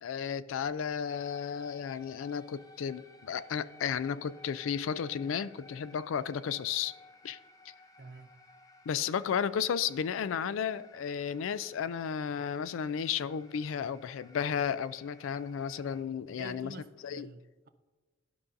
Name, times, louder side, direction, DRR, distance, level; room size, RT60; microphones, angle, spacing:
voice 1, 0.0-6.9 7.2-7.4 8.9-16.7 17.0-17.3, left 7 dB, 85° left, 0.3 m, -33 dB
sound 1, 1.0-16.0, left 2 dB, 20° left, 0.6 m, -58 dB
voice 2, 8.0-8.4 16.3-17.7, right 3 dB, 50° right, 0.5 m, -48 dB
12.5 x 5.4 x 2.6 m
head